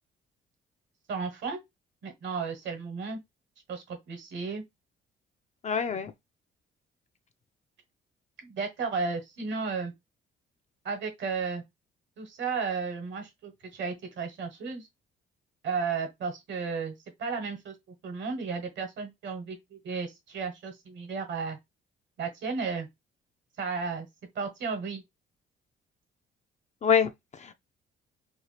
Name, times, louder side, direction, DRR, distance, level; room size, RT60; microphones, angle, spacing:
voice 1, 1.1-1.6 2.0-3.2 3.7-4.6 8.4-9.9 10.8-11.6 12.2-14.9 15.6-17.7 18.0-21.6 22.2-22.9 23.6-24.1 24.3-25.0, right 5 dB, 65° right, 1.1 m, -33 dB
voice 2, 5.6-6.1 26.8-27.5, left 7 dB, 35° left, 0.4 m, -26 dB
2.8 x 2.3 x 3.2 m
cardioid pair, 90°, 20 cm